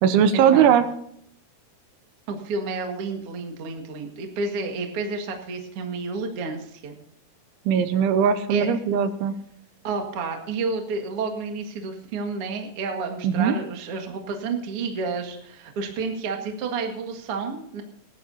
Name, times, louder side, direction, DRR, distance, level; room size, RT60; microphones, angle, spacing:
voice 1, 0.0-0.8 7.7-9.4 13.2-13.5, right 8 dB, 85° right, 11 dB, 3.2 m, -19 dB
voice 2, 2.3-7.0 8.5-8.7 9.8-17.8, right 4 dB, 65° right, 3 dB, 1.4 m, -30 dB
19.5 x 11.5 x 2.8 m, 0.72 s
omnidirectional pair, 5.6 m